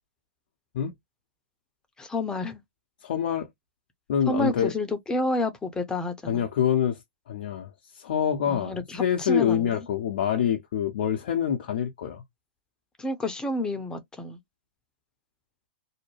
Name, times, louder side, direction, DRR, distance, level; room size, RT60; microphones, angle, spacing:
voice 1, 2.0-2.6 4.3-6.5 8.5-9.9 13.0-14.4, left 1 dB, 10° left, 0.7 m, -30 dB
voice 2, 3.0-3.5 4.1-4.7 6.3-7.0 7.3-12.2, left 9 dB, 65° left, 0.6 m, -26 dB
2.7 x 2.1 x 3.0 m
hypercardioid pair, 110°, 6 cm